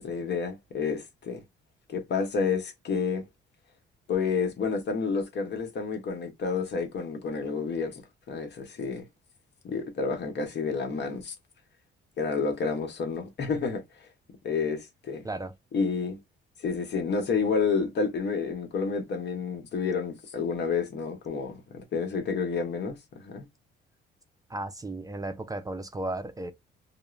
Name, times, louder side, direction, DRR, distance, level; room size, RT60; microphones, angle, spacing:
voice 1, 0.0-1.4 1.9-3.3 4.1-8.0 8.3-9.0 9.6-11.3 12.2-13.8 14.4-15.2 15.7-16.2 16.6-23.5, left 5 dB, 60° left, 1.0 m, -30 dB
voice 2, 24.5-26.5, right 2 dB, 15° right, 0.4 m, -34 dB
2.4 x 2.1 x 3.1 m
cardioid pair, 90°, 20 cm